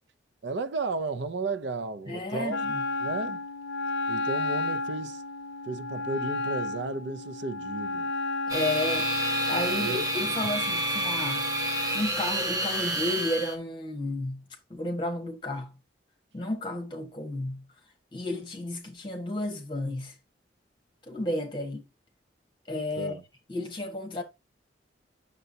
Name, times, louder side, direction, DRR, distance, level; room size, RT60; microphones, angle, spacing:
voice 1, 0.4-2.6 3.0-3.4 4.1-5.2 5.7-8.1 9.8-10.0 23.0-23.2, right 3 dB, 70° right, 0.5 m, -33 dB
voice 2, 2.1-2.8 8.5-9.1 9.5-11.4 11.9-14.4 14.7-15.7 16.3-17.7 18.1-20.1 21.1-21.8 22.7-23.2 23.5-24.2, left 1 dB, 25° left, 1.5 m, -32 dB
Wind instrument woodwind instrument, 2.5-12.1, left 2 dB, 65° left, 0.5 m, -32 dB
sound 1, 8.5-13.5, right 1 dB, 20° right, 1.5 m, -29 dB
8.0 x 6.7 x 2.7 m
head